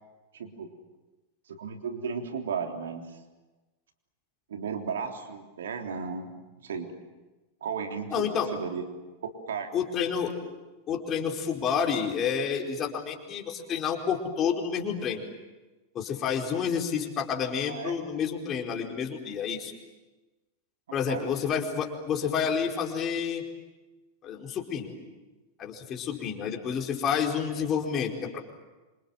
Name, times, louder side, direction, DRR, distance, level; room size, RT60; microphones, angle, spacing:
voice 1, 0.3-0.7 1.5-3.2 4.5-6.3 6.6-6.9 7.6-8.9 9.2-9.7 17.7-18.0 20.9-21.3 27.1-27.2, right 6 dB, 65° right, 4 dB, 3.5 m, -35 dB
voice 2, 8.1-8.5 9.7-10.4 10.9-15.3 15.9-19.7 20.9-23.4 24.2-24.9 25.6-28.4, left 7 dB, 30° left, 1 dB, 4.6 m, -29 dB
27.5 x 27.0 x 7.6 m, 1.2 s
figure-of-eight pair, 90°, 0 cm